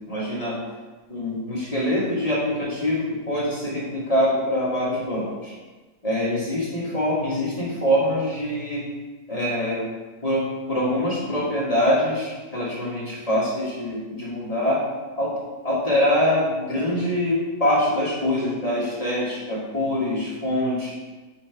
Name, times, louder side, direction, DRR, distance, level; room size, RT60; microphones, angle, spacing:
voice 1, 0.1-0.6 1.1-5.5 6.0-8.8 9.3-9.9 10.2-14.8 15.2-15.3 15.6-20.9, left 1 dB, 25° left, -7 dB, 1.3 m, -24 dB
5.1 x 4.2 x 4.4 m, 1.2 s
omnidirectional pair, 1.5 m